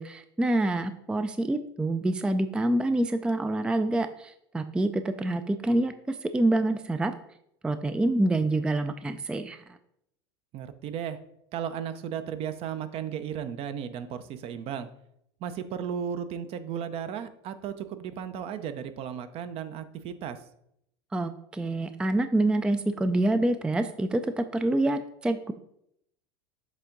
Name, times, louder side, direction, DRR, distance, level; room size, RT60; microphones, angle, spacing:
voice 1, 0.0-7.1 7.6-9.6 21.1-25.5, right 1 dB, 5° right, 10 dB, 0.3 m, -26 dB
voice 2, 10.5-11.2 11.5-14.9 15.4-20.4, right 8 dB, 50° right, 11 dB, 0.6 m, -35 dB
7.3 x 3.5 x 3.9 m, 0.75 s
hypercardioid pair, 95°, 13 cm